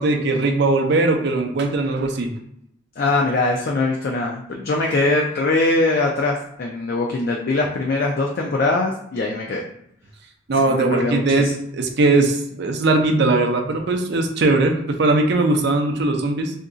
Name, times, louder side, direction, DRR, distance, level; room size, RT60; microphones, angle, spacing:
voice 1, 0.0-2.3 10.5-16.5, right 2 dB, 60° right, 4 dB, 0.5 m, -19 dB
voice 2, 3.0-9.6 10.5-11.5, left 2 dB, 50° left, 0 dB, 0.4 m, -22 dB
2.6 x 2.2 x 3.8 m, 0.73 s
head